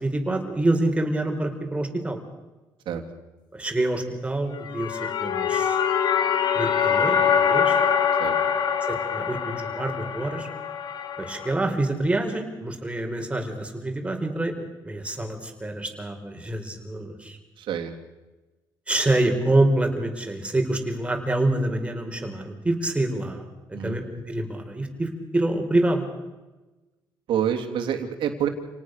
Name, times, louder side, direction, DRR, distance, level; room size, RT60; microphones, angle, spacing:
voice 1, 0.0-2.2 3.5-5.8 6.5-7.8 8.8-10.5 11.2-17.4 18.9-23.5 23.8-26.1, right 2 dB, 15° right, 4 dB, 4.8 m, -26 dB
sound 1, 4.6-11.5, left 7 dB, 60° left, 2.3 m, -24 dB
voice 2, 8.2-8.5 17.6-18.0 23.7-24.0 27.3-28.5, right 9 dB, 75° right, 5 dB, 3.2 m, -27 dB
28.5 x 19.0 x 6.7 m, 1.1 s
cardioid pair, 100°, 8 cm